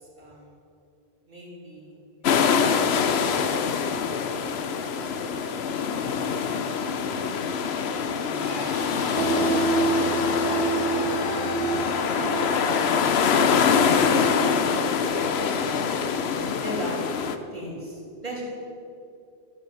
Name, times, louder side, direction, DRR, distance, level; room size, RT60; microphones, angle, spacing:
voice 1, 1.3-2.7 7.0-7.7 8.1-8.7 9.1-10.0 15.4-15.9 16.6-17.0 17.5-18.4, equal, 45° right, -3 dB, 3.0 m, -40 dB
sound 1, 2.2-17.4, left 6 dB, 85° left, 1.0 m, -24 dB
sound 2, 8.4-14.5, left 2 dB, 50° left, 1.8 m, -37 dB
sound 3, 9.2-15.7, right 4 dB, 80° right, 0.9 m, -29 dB
13.5 x 7.5 x 6.9 m, 2.6 s
omnidirectional pair, 1.0 m